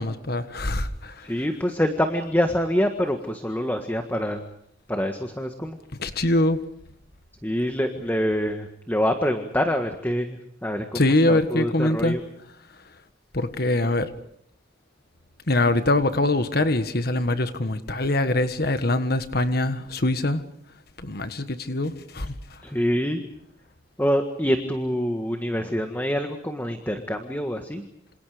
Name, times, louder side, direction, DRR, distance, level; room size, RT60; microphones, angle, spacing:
voice 1, 0.0-1.3 6.0-6.6 10.9-12.2 13.3-14.1 15.5-20.4 21.0-22.3, left 2 dB, 50° left, 10 dB, 1.5 m, -23 dB
voice 2, 1.2-4.4 4.9-5.8 7.4-12.2 22.6-23.2 24.0-27.9, equal, 10° left, 5 dB, 1.7 m, -26 dB
27.5 x 27.5 x 5.1 m, 0.72 s
head